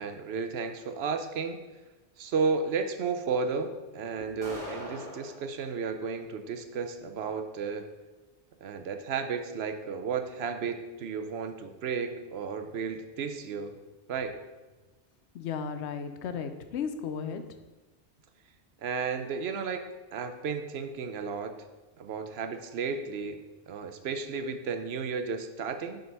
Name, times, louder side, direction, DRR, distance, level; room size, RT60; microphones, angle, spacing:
voice 1, 0.0-1.6 2.2-7.9 8.6-13.7 14.1-14.4 18.8-19.8 20.1-21.5 22.0-23.4 23.7-26.0, right 5 dB, 70° right, 8 dB, 0.8 m, -33 dB
sound 1, 4.4-5.4, equal, 5° left, 2.2 m, -40 dB
voice 2, 15.3-17.4, left 6 dB, 75° left, 9 dB, 0.9 m, -35 dB
6.9 x 3.8 x 5.2 m, 1.2 s
omnidirectional pair, 1.2 m